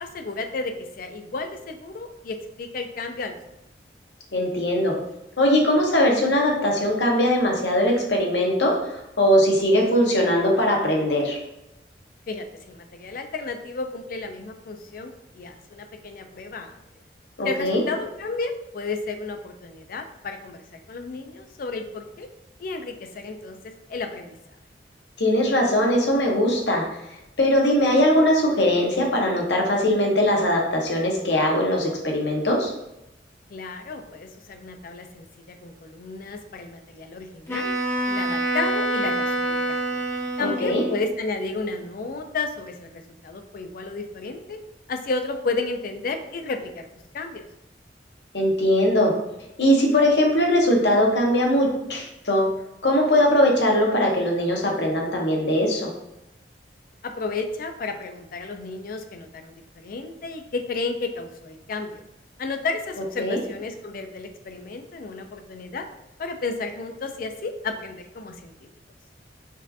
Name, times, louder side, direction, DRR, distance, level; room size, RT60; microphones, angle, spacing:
voice 1, 0.0-3.4 12.3-16.8 17.4-22.3 22.6-24.3 33.5-37.7 38.1-40.0 40.4-44.6 44.9-46.9 47.1-47.4 57.0-62.0 62.4-65.9 66.2-68.5, left 3 dB, 55° left, 6 dB, 0.4 m, -32 dB
voice 2, 4.3-5.0 5.4-11.4 17.4-17.8 25.2-27.0 27.4-32.7 40.4-40.8 48.3-49.2 49.6-52.6 52.8-55.9 63.2-63.4, left 1 dB, 75° left, 0 dB, 1.0 m, -20 dB
Wind instrument woodwind instrument, 37.5-41.0, right 1 dB, 15° left, 0.6 m, -26 dB
5.3 x 2.5 x 2.7 m, 0.87 s
head